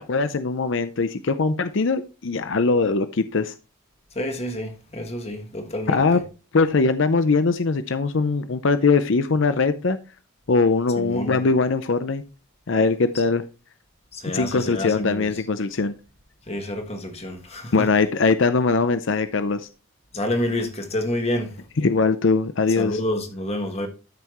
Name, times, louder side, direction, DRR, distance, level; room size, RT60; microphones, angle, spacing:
voice 1, 0.0-3.5 5.9-6.2 6.5-10.0 10.5-12.2 12.7-13.4 14.3-15.9 17.7-19.6 21.8-23.0, left 4 dB, 55° left, 0.6 m, -21 dB
voice 2, 4.1-6.0 11.0-11.3 14.1-15.3 16.5-17.9 20.1-21.5 22.8-23.9, left 1 dB, 30° left, 1.5 m, -28 dB
12.5 x 5.7 x 3.0 m
head